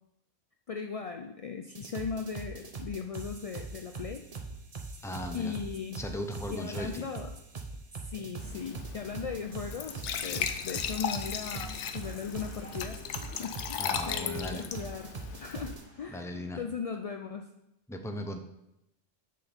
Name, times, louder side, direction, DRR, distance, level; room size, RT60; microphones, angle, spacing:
voice 1, 0.7-4.2 5.3-6.0 6.5-7.3 8.0-13.0 13.3-15.1 15.4-17.5, left 6 dB, 70° left, 5 dB, 0.3 m, -38 dB
sound 1, 1.7-15.8, right 4 dB, 35° right, 0.8 m, -42 dB
voice 2, 5.0-5.6 6.0-7.1 13.8-14.6 15.4-15.6 16.1-16.6 17.9-18.4, left 1 dB, 5° left, 5 dB, 0.5 m, -37 dB
Glass / Trickle dribble / Fill (with liquid), 8.4-15.8, left 8 dB, 85° left, 0.9 m, -37 dB
sound 2, 10.8-16.4, right 1 dB, 20° left, 3.6 m, -55 dB
7.7 x 6.6 x 4.4 m, 0.87 s
omnidirectional pair, 1.2 m